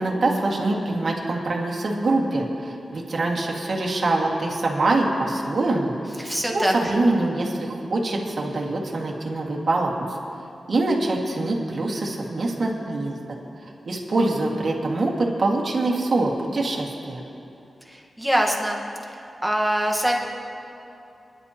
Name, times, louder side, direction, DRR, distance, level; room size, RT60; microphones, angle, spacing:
voice 1, 0.0-5.9 6.5-9.9 10.7-13.2 13.9-17.2, right 2 dB, 50° right, -2 dB, 1.9 m, -24 dB
voice 2, 6.2-6.9 17.8-18.8 19.1-20.2, equal, 5° right, 0 dB, 1.4 m, -24 dB
29.0 x 11.0 x 3.0 m, 2.7 s
wide cardioid pair, 155°, 0 cm